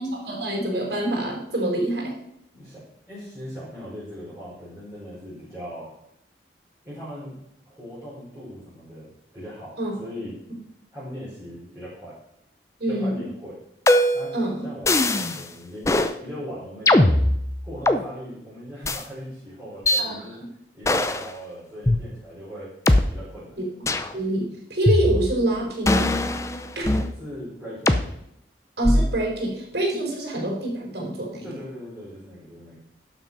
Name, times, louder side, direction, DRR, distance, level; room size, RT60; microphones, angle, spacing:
voice 1, 0.0-2.1 9.8-9.9 12.8-13.2 14.3-14.7 20.0-20.2 23.6-23.7 23.9-26.2 26.8-26.9 28.8-31.5, right 1 dB, 60° right, -1 dB, 4.1 m, -26 dB
voice 2, 2.5-5.9 6.8-7.3 7.7-9.7 10.0-10.4 10.9-12.1 12.9-13.6 14.1-14.3 14.6-17.2 17.6-20.4 20.7-22.7 23.1-23.6 26.8-28.0 31.4-32.7, equal, 10° right, -11 dB, 4.5 m, -39 dB
sound 1, 13.9-14.3 14.9-15.4 15.8-16.1 16.9-18.0 18.8-19.0 19.9-20.0 20.8-21.3 21.9-22.0 22.9-23.0 23.9-24.1 24.9-25.4 25.9-27.1 27.9-28.0 28.8-29.2, left 1 dB, 15° left, 0.5 m, -20 dB
12.0 x 6.2 x 5.4 m, 0.77 s
head